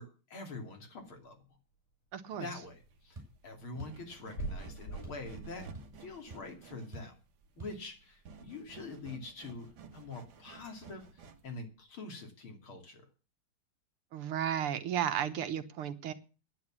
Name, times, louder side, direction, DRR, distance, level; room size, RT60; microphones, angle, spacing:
voice 1, 0.0-1.6 2.4-5.7 6.0-7.1 7.6-13.1, left 3 dB, 75° left, 3 dB, 3.7 m, -45 dB
voice 2, 2.1-2.5 14.1-16.1, right 9 dB, 85° right, 10 dB, 2.0 m, -34 dB
sound 1, 2.7-11.6, right 5 dB, 65° right, 1.9 m, -54 dB
sound 2, 3.1-3.3 3.8-4.0 4.4-4.6 5.0-5.3 5.5-6.0 6.3-6.4 6.9-7.2 7.6-7.8, right 2 dB, 15° right, 5.9 m, -47 dB
sound 3, 4.3-8.1 8.3-8.8 9.2-9.3 10.2-10.3, right 2 dB, 40° left, 3.1 m, -44 dB
10.0 x 9.8 x 7.3 m, 0.34 s
omnidirectional pair, 2.3 m